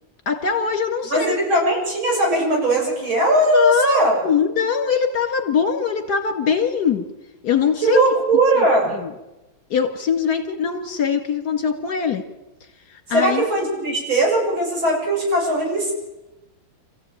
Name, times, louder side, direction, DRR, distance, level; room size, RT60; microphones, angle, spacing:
voice 1, 0.3-1.4 3.5-7.0 7.4-8.0 9.0-9.1 9.7-12.2 13.1-13.5, left 6 dB, 55° left, 7 dB, 2.6 m, -22 dB
voice 2, 1.1-4.2 7.8-8.9 13.1-15.9, right 1 dB, 80° right, -1 dB, 8.3 m, -19 dB
27.0 x 15.5 x 9.0 m, 0.99 s
omnidirectional pair, 2.2 m